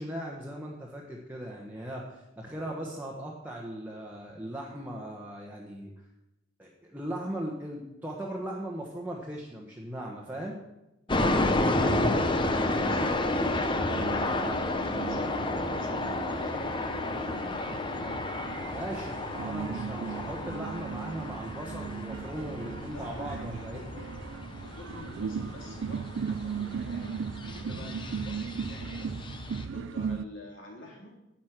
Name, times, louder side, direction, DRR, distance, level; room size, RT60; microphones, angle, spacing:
voice 1, 0.0-5.9 6.6-10.6 18.7-23.8, right 1 dB, 10° right, -2 dB, 1.3 m, -38 dB
sound 1, 11.1-29.6, left 2 dB, 25° left, 0.8 m, -31 dB
voice 2, 11.5-17.8 22.9-24.1 24.5-29.1 29.6-31.1, left 2 dB, 70° left, -1 dB, 3.3 m, -48 dB
sound 2, 12.8-30.2, right 6 dB, 60° right, 0.4 m, -38 dB
10.5 x 8.4 x 6.0 m, 0.94 s
head